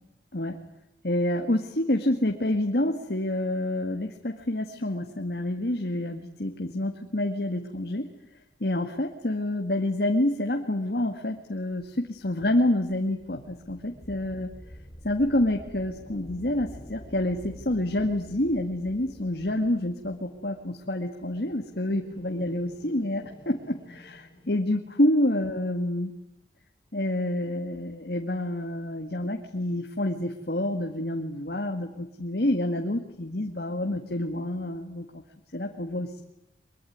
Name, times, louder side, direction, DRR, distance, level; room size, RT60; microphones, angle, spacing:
voice 1, 1.0-8.1 8.6-14.5 15.0-26.1 26.9-35.2 35.5-36.2, left 1 dB, 65° left, 4 dB, 1.9 m, -28 dB
sound 1, 11.5-24.9, equal, 25° left, 4.2 m, -48 dB
23.0 x 23.0 x 9.4 m, 0.88 s
head